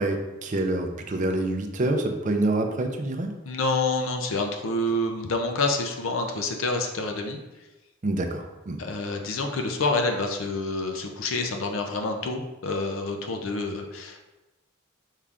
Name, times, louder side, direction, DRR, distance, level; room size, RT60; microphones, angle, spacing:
voice 1, 0.0-3.3 8.0-8.8, right 2 dB, 40° right, 4 dB, 0.5 m, -26 dB
voice 2, 3.4-7.4 8.8-14.2, left 2 dB, 75° left, 3 dB, 0.5 m, -28 dB
5.5 x 3.5 x 2.4 m, 1.0 s
head